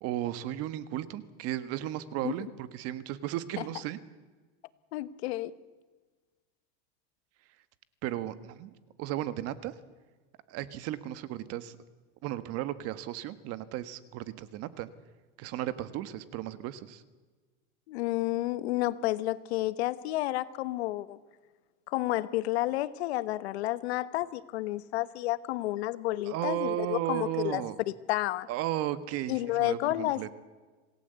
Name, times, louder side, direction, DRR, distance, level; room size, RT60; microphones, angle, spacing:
voice 1, 0.0-4.0 8.0-8.7 9.0-9.8 10.5-11.8 12.2-14.9 15.4-17.0 26.2-27.8 28.5-30.3, right 13 dB, 50° right, 14 dB, 1.6 m, -35 dB
voice 2, 4.9-5.5 17.9-21.2 21.9-27.6 28.1-28.5 29.3-30.2, left 16 dB, 90° left, 16 dB, 1.3 m, -30 dB
27.0 x 18.0 x 8.2 m, 1.3 s
supercardioid pair, 145°, 32 cm